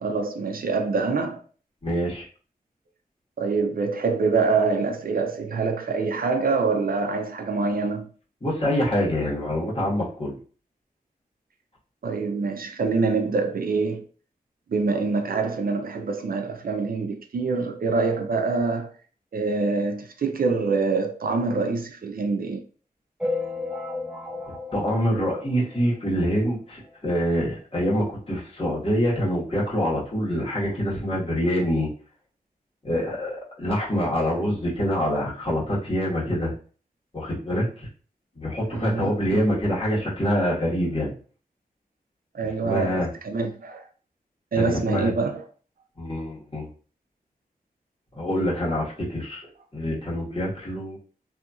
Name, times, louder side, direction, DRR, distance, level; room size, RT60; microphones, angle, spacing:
voice 1, 0.0-1.4 3.4-8.1 12.0-14.0 14.7-18.9 19.3-22.6 38.7-39.1 42.3-43.8 44.5-45.4, right 4 dB, 70° right, 0.5 m, -25 dB
voice 2, 1.8-2.2 8.4-10.4 24.5-31.9 32.8-36.5 37.1-37.9 38.3-41.1 42.4-43.1 44.5-45.1 46.0-46.7 48.1-49.4 49.7-51.0, equal, 40° left, 1.4 m, -25 dB
sound 1, 23.2-26.1 26.5-26.6 26.8-27.0 27.2-27.3 28.2-28.3 28.8-28.9, left 2 dB, 5° right, 0.8 m, -33 dB
2.7 x 2.7 x 2.4 m
wide cardioid pair, 60°, 16 cm